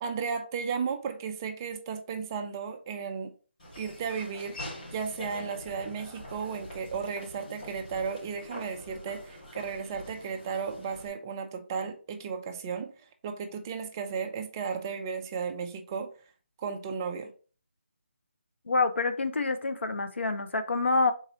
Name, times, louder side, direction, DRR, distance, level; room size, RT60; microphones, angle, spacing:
voice 1, 0.0-3.3 3.8-4.6 4.9-16.1 16.6-17.3, right 6 dB, 15° right, 0.3 m, -34 dB
Laughter / Walk footsteps, 3.6-11.1, left 1 dB, 40° left, 2.2 m, -44 dB
voice 2, 18.7-21.1, left 3 dB, 80° left, 0.7 m, -27 dB
3.9 x 2.7 x 4.1 m
figure-of-eight pair, 160°, 6 cm